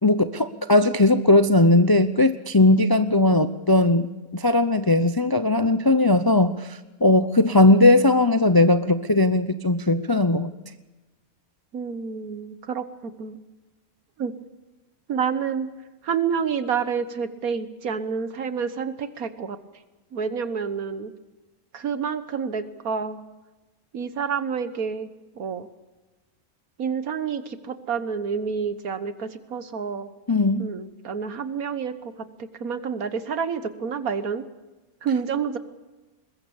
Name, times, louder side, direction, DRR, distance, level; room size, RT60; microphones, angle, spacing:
voice 1, 0.0-4.1 4.3-10.5 30.3-30.7, left 2 dB, 30° left, 11 dB, 0.4 m, -18 dB
voice 2, 11.7-13.4 14.2-14.3 15.1-15.7 16.0-19.6 20.1-21.1 21.7-23.2 23.9-25.7 26.8-30.1 30.6-32.1 32.4-34.4 35.0-35.6, right 6 dB, 75° right, 11 dB, 1.7 m, -28 dB
22.0 x 21.5 x 7.1 m, 1.1 s
omnidirectional pair, 1.5 m